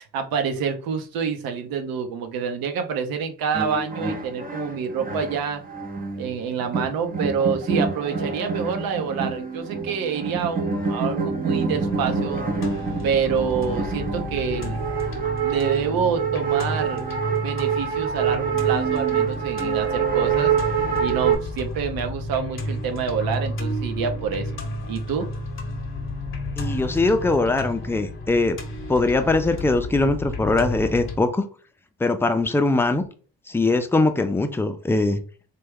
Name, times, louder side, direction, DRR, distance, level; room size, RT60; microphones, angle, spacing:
voice 1, 0.0-5.6 6.2-12.4 13.0-14.8 15.4-17.0 17.4-20.5 21.0-24.5 24.9-25.3, right 6 dB, 70° right, 7 dB, 0.8 m, -27 dB
sound 1, 3.5-21.4, right 6 dB, 25° right, 0.7 m, -26 dB
sound 2, 11.7-31.2, left 1 dB, 35° left, 0.9 m, -32 dB
voice 2, 26.6-28.6 28.9-31.4 32.0-33.0 33.5-35.2, left 2 dB, 5° left, 7 dB, 0.4 m, -21 dB
3.1 x 2.3 x 3.5 m, 0.39 s
supercardioid pair, 85°, 36 cm